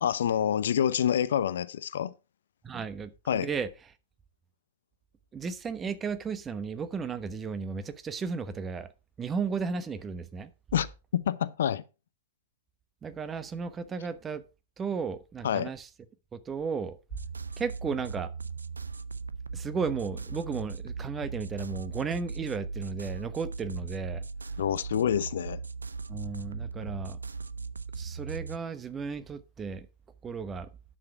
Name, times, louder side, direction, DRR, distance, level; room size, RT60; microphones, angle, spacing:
voice 1, 0.0-2.1 3.3-3.5 10.7-10.9 11.1-11.8 15.4-15.7 24.6-25.6, left 9 dB, 65° left, 0.7 m, -27 dB
voice 2, 2.6-3.7 5.3-8.9 9.2-10.5 13.0-14.4 14.8-15.9 16.3-17.0 17.6-18.3 19.5-24.2 26.1-27.2 28.0-29.9 30.2-30.7, right 5 dB, 20° right, 1.0 m, -34 dB
sound 1, 17.1-28.6, right 4 dB, 80° right, 0.5 m, -38 dB
10.0 x 7.0 x 4.6 m
figure-of-eight pair, 105°, 0 cm